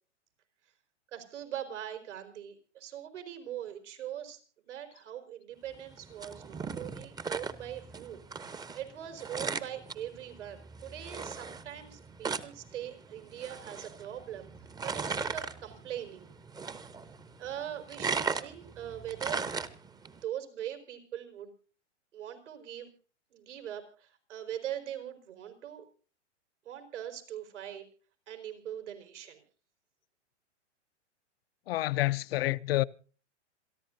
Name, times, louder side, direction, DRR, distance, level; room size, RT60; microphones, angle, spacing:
voice 1, 1.1-4.4 4.6-14.5 14.8-16.3 17.4-19.4 20.0-21.5 22.1-22.9 23.3-25.8 26.6-27.8 28.3-29.4, right 11 dB, 80° right, 4.8 m, -41 dB
sound 1, 5.7-20.2, right 5 dB, 10° right, 0.9 m, -39 dB
voice 2, 31.7-32.8, left 17 dB, 55° left, 0.7 m, -28 dB
27.5 x 11.0 x 2.6 m
hypercardioid pair, 125°, 36 cm